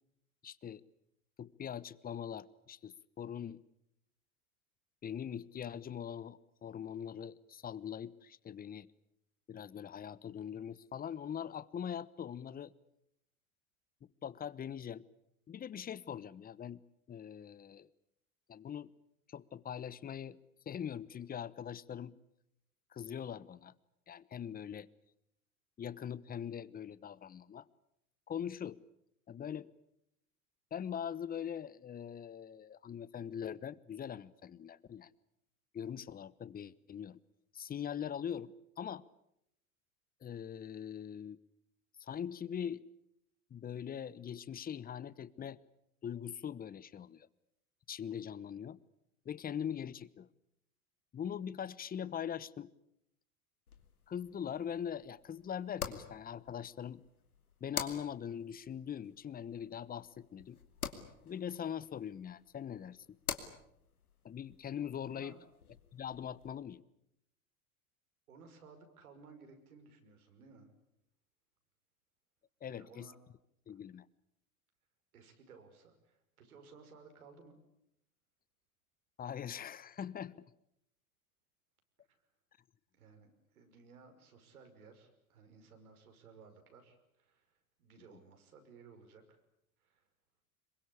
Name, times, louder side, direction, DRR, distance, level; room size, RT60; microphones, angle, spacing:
voice 1, 0.4-0.8 1.4-3.6 5.0-8.9 9.5-12.7 14.2-15.0 15.5-16.8 17.1-17.9 18.5-18.9 19.3-20.4 20.7-22.1 22.9-23.7 24.1-24.9 25.8-27.7 28.3-28.8 29.3-29.7 30.7-35.1 35.7-37.2 37.5-39.0 40.2-41.4 42.0-42.9 43.5-45.6 46.0-47.3 47.9-48.8 49.2-50.3 51.1-52.7 54.1-57.0 57.6-60.6 61.2-63.0 64.2-65.4 65.9-66.8 72.6-73.1 73.7-74.0 79.2-80.3, left 8 dB, 20° left, 19 dB, 1.0 m, -42 dB
sound 1, 53.7-66.5, left 6 dB, 90° left, 2.6 m, -47 dB
voice 2, 68.3-70.7 72.7-73.2 75.1-77.6 82.1-82.2 82.9-89.4 89.8-90.1, right 5 dB, 80° right, 5 dB, 5.8 m, -58 dB
26.0 x 23.0 x 8.5 m, 0.80 s
hypercardioid pair, 90°, 43 cm